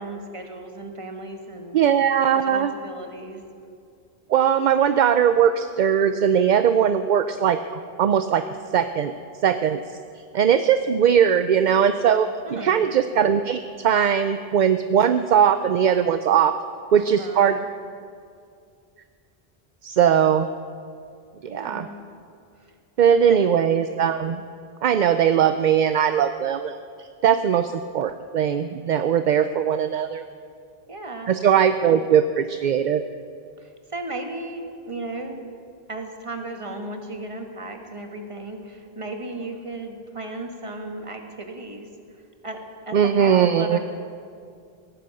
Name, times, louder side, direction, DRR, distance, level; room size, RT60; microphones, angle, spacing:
voice 1, 0.0-1.8 2.5-3.4 12.4-12.8 17.1-17.7 21.5-22.0 22.6-22.7 23.3-23.4 30.9-31.3 33.6-35.4 35.9-41.9 42.4-43.8, right 2 dB, 30° right, 4 dB, 1.6 m, -35 dB
voice 2, 1.7-2.7 4.3-8.5 8.7-9.1 9.4-9.8 10.3-16.6 16.9-17.6 19.8-20.5 21.4-21.9 23.0-24.4 24.8-30.2 31.3-33.0 42.9-43.8, right 8 dB, 55° right, 10 dB, 0.6 m, -20 dB
17.5 x 10.0 x 7.7 m, 2.3 s
omnidirectional pair, 1.0 m